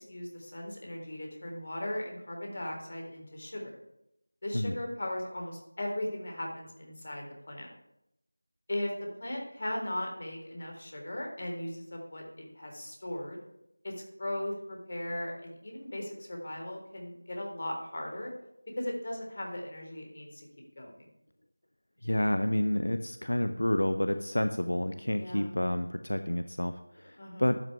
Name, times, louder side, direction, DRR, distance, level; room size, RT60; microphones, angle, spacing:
voice 1, 0.0-3.8 4.4-7.7 8.7-13.4 13.8-18.3 18.8-20.5 20.8-21.1 25.1-25.5 27.2-27.5, left 1 dB, 45° left, 1 dB, 3.8 m, -38 dB
voice 2, 22.0-27.7, left 1 dB, 85° left, 9 dB, 0.9 m, -29 dB
12.0 x 6.2 x 8.8 m, 0.85 s
figure-of-eight pair, 175°, 0 cm